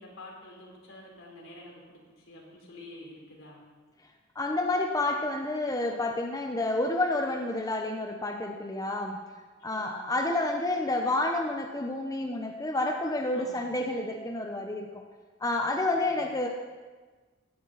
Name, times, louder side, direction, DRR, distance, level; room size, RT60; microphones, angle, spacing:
voice 1, 0.0-3.6 9.7-10.0 13.3-13.8 15.9-16.2, left 1 dB, 75° left, -1 dB, 3.8 m, -49 dB
voice 2, 4.4-9.2 9.6-15.0 15.4-16.5, left 2 dB, 20° left, 2 dB, 0.8 m, -29 dB
16.5 x 11.0 x 4.1 m, 1.4 s
head